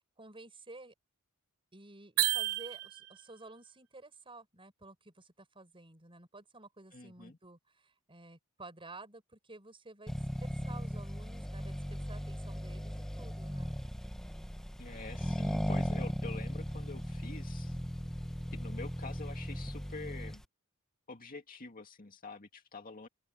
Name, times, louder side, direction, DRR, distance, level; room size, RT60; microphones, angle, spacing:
voice 1, 0.2-0.9 1.7-10.1 10.4-13.7, right 2 dB, 25° right, 6.8 m, -52 dB
sound 1, 2.2-3.3, right 14 dB, 90° right, 1.1 m, -32 dB
voice 2, 6.9-7.4 14.8-17.8 18.5-20.4 21.1-23.1, left 3 dB, 40° left, 2.1 m, -47 dB
Accelerating revving vroom, 10.1-20.4, equal, ahead, 1.3 m, -37 dB
open air
head